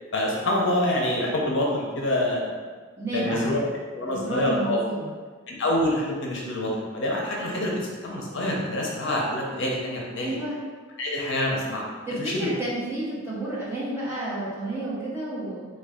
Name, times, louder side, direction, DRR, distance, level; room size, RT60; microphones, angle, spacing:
voice 1, 0.1-2.6 3.1-3.6 3.9-4.8 5.5-7.7 8.0-10.4 11.0-11.9 12.2-12.5, left 1 dB, 60° left, -2 dB, 0.6 m, -26 dB
voice 2, 3.0-3.6 4.1-5.1 10.2-10.6 12.1-15.6, right 1 dB, 10° right, -9 dB, 0.9 m, -31 dB
3.7 x 2.3 x 3.5 m, 1.5 s
head